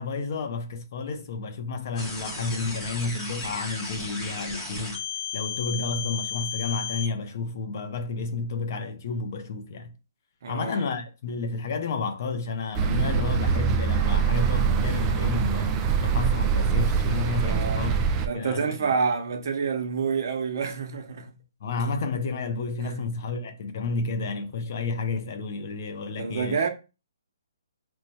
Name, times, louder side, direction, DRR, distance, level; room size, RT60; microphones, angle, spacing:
voice 1, 0.0-5.0 5.3-9.9 10.5-18.9 21.6-26.6, left 3 dB, 50° left, 0.5 m, -31 dB
sound 1, 2.0-7.1, left 5 dB, 15° left, 0.9 m, -34 dB
voice 2, 10.4-10.9 17.4-17.9 18.2-21.4 22.8-23.0 26.2-26.7, right 5 dB, 55° right, 0.8 m, -28 dB
sound 2, 12.7-18.3, right 6 dB, 20° right, 0.3 m, -24 dB
3.1 x 2.1 x 4.0 m
hypercardioid pair, 155°, 2 cm